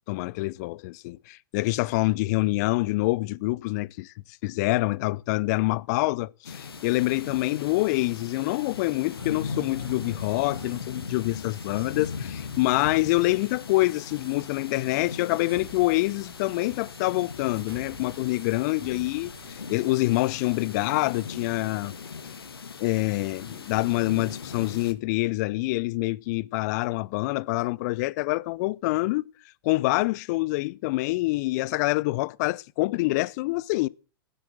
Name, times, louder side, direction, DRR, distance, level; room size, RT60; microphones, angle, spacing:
voice 1, 0.1-4.1 4.4-21.9 22.8-29.3 29.6-33.9, left 21 dB, 45° left, 0.7 m, -26 dB
sound 1, 6.4-24.9, left 5 dB, 75° left, 1.8 m, -39 dB
sound 2, 9.1-21.7, right 3 dB, 80° right, 7.2 m, -52 dB
15.0 x 10.0 x 7.3 m
figure-of-eight pair, 100°, 13 cm